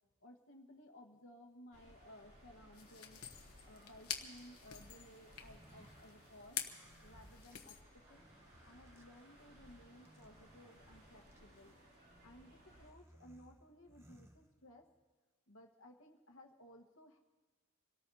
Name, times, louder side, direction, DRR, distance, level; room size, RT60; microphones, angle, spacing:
voice 1, 0.2-3.3 3.6-6.6 7.0-8.3 8.6-11.8 12.2-14.9 15.5-17.2, left 1 dB, 65° left, 3 dB, 1.4 m, -59 dB
sound 1, 1.7-12.9, equal, 45° right, 3.1 m, -62 dB
sound 2, 2.7-7.8, left 9 dB, 85° left, 1.1 m, -48 dB
sound 3, 5.3-15.0, right 1 dB, 10° right, 0.8 m, -65 dB
26.5 x 18.0 x 2.8 m, 1.4 s
head